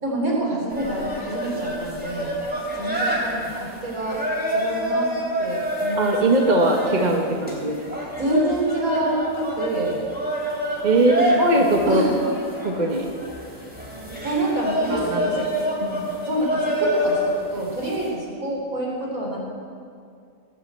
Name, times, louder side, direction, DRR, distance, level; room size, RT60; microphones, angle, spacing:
voice 1, 0.0-2.3 2.7-4.2 4.5-5.1 5.4-6.1 6.5-6.7 8.2-10.1 10.9-12.2 14.2-15.5 15.7-15.8 16.2-19.4, right 1 dB, 60° right, -3 dB, 4.1 m, -27 dB
sound 1, 0.7-18.1, equal, 5° right, 3.6 m, -27 dB
voice 2, 6.0-7.8 10.8-11.1 11.4-12.3 12.6-13.1 14.9-15.5 15.8-16.1, right 2 dB, 30° right, 1 dB, 1.3 m, -21 dB
19.0 x 8.9 x 8.3 m, 2.3 s
omnidirectional pair, 1.7 m